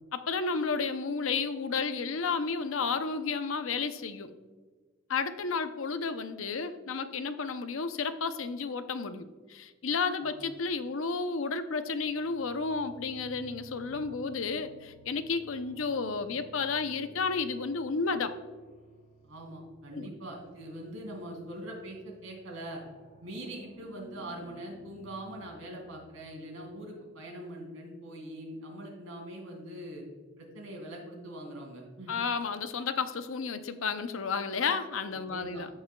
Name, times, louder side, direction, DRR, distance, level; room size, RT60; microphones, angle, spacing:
voice 1, 0.1-4.3 5.1-18.3 20.0-20.1 32.1-35.7, left 4 dB, 75° left, 10 dB, 0.6 m, -32 dB
sound 1, 11.9-26.5, equal, 35° left, 2.2 m, -56 dB
voice 2, 19.2-22.8 23.2-30.0 30.4-32.1 35.1-35.6, right 1 dB, 80° right, 0 dB, 2.6 m, -42 dB
15.5 x 5.5 x 2.3 m, 1.4 s
head